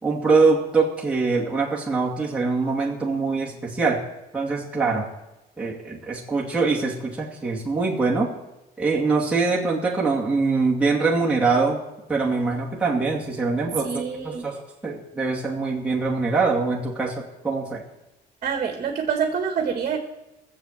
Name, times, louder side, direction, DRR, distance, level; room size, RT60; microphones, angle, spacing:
voice 1, 0.0-4.1 4.3-5.1 5.6-8.4 8.8-11.8 12.1-17.8, right 4 dB, 5° right, -4 dB, 2.3 m, -23 dB
voice 2, 13.8-14.4 18.4-20.0, right 7 dB, 45° right, 5 dB, 1.6 m, -26 dB
16.5 x 7.5 x 7.8 m, 0.99 s
cardioid pair, 110°, 17 cm